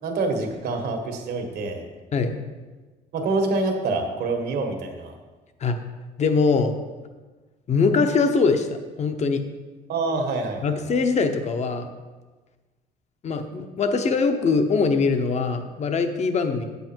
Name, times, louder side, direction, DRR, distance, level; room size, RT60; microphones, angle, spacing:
voice 1, 0.0-1.8 3.1-5.1 9.9-10.8, right 3 dB, 70° right, 3 dB, 1.7 m, -26 dB
voice 2, 6.2-6.7 7.7-8.7 9.0-9.4 10.6-11.9 13.2-16.6, left 4 dB, 40° left, 7 dB, 0.9 m, -22 dB
8.7 x 8.2 x 4.6 m, 1.3 s
cardioid pair, 110°, 17 cm